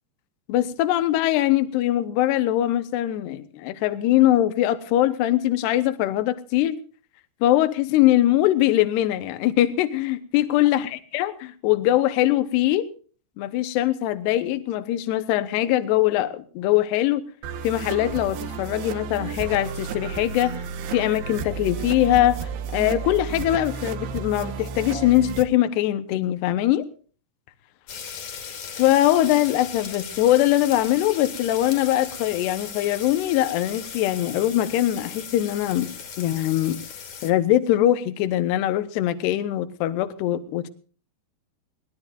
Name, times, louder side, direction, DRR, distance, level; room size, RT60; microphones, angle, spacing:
voice 1, 0.5-6.8 7.4-11.3 11.6-12.9 13.4-17.2 17.6-20.5 20.9-26.8 28.8-35.9 36.2-36.8 37.2-40.7, left 13 dB, 75° left, 10 dB, 3.0 m, -22 dB
sound 1, 17.4-25.4, right 6 dB, 70° right, 2.9 m, -32 dB
sound 2, 27.9-37.3, left 7 dB, 50° left, 2.8 m, -37 dB
22.5 x 19.0 x 2.5 m, 0.41 s
omnidirectional pair, 5.0 m